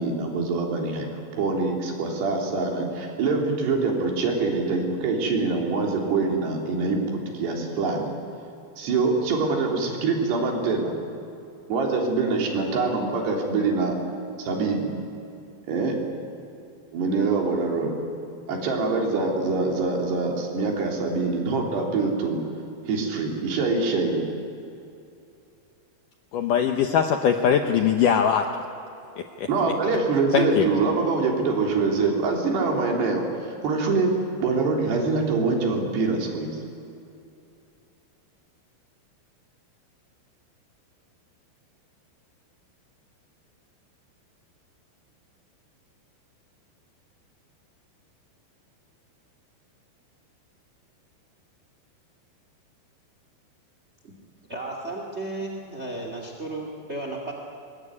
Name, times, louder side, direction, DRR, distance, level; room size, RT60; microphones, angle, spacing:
voice 1, 0.0-8.1 8.8-10.9 11.7-14.0 14.4-14.9 15.7-16.0 16.9-17.9 18.5-22.4 22.9-24.2 29.5-34.1 34.4-36.6, right 4 dB, 65° right, 0 dB, 5.5 m, -24 dB
voice 2, 26.3-28.5 29.4-29.5 30.3-30.7, left 8 dB, 80° left, 5 dB, 1.9 m, -21 dB
voice 3, 54.5-57.3, right 2 dB, 35° right, 1 dB, 1.1 m, -34 dB
24.0 x 21.5 x 9.8 m, 2.7 s
omnidirectional pair, 5.2 m